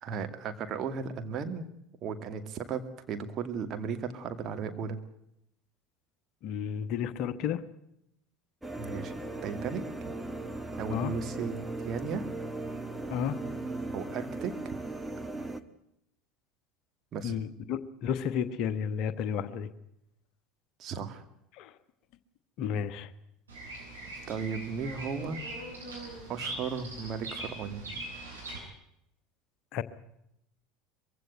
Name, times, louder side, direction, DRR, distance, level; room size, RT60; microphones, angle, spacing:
voice 1, 0.0-1.7 2.0-5.0 8.8-9.9 10.8-11.6 11.8-12.3 13.9-14.8 17.1-17.4 20.8-21.2 24.3-25.4 26.3-28.1, right 6 dB, 40° right, 7 dB, 2.3 m, -35 dB
voice 2, 6.4-7.6 10.9-11.1 13.1-13.4 17.2-19.7 21.6-21.7 22.6-23.1 29.7-29.8, left 8 dB, 50° left, 13 dB, 1.2 m, -32 dB
sound 1, 8.6-15.6, right 2 dB, 5° right, 1.6 m, -38 dB
Bird vocalization bird call bird song, 23.5-28.6, right 2 dB, 80° right, 7.9 m, -41 dB
22.0 x 16.0 x 9.3 m, 0.80 s
figure-of-eight pair, 70°, 0 cm